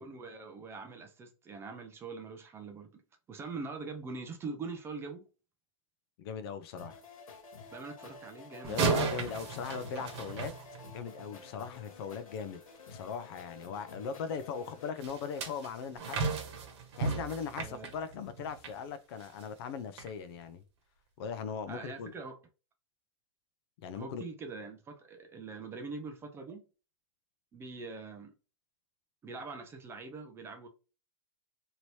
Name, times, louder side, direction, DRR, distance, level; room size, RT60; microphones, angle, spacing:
voice 1, 0.0-3.0 3.3-5.3 7.7-8.8 17.6-17.9 21.7-22.4 23.9-26.6 27.5-28.3 29.2-30.7, right 4 dB, 15° right, 0.4 m, -43 dB
voice 2, 6.2-7.0 8.6-10.5 10.9-12.6 12.9-16.2 17.0-20.6 21.2-22.1 23.8-24.2, left 6 dB, 50° left, 0.5 m, -39 dB
sound 1, 6.8-14.9, left 4 dB, 90° left, 1.2 m, -51 dB
sound 2, 8.6-11.2 15.0-18.8 19.2-19.4 20.0-20.1, right 4 dB, 50° right, 1.1 m, -35 dB
2.9 x 2.7 x 3.1 m
hypercardioid pair, 145°, 17 cm